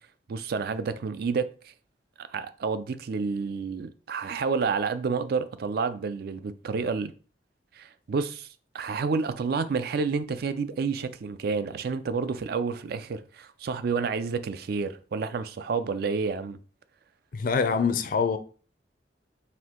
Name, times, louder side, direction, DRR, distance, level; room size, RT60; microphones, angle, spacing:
voice 1, 0.3-1.5 2.2-7.1 7.8-8.5 8.7-16.6, right 5 dB, 60° right, 0.4 m, -29 dB
voice 2, 17.3-18.4, left 5 dB, 50° left, 0.4 m, -24 dB
4.3 x 2.6 x 3.7 m
head